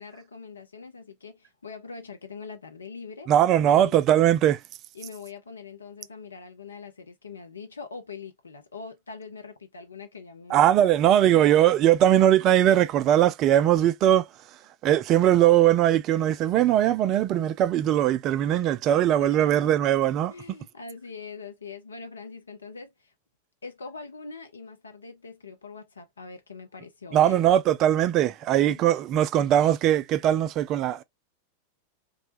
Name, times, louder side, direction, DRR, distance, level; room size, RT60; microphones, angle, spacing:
voice 1, 0.0-3.3 3.7-4.0 4.9-10.7 11.2-11.5 18.3-18.5 19.2-19.5 20.3-23.1 23.6-27.4 28.7-28.9, left 4 dB, 75° left, 0.7 m, -42 dB
voice 2, 3.3-4.6 10.5-14.2 14.8-20.3 27.1-31.0, right 11 dB, 35° right, 0.3 m, -20 dB
2.4 x 2.1 x 2.7 m
figure-of-eight pair, 90°, 0 cm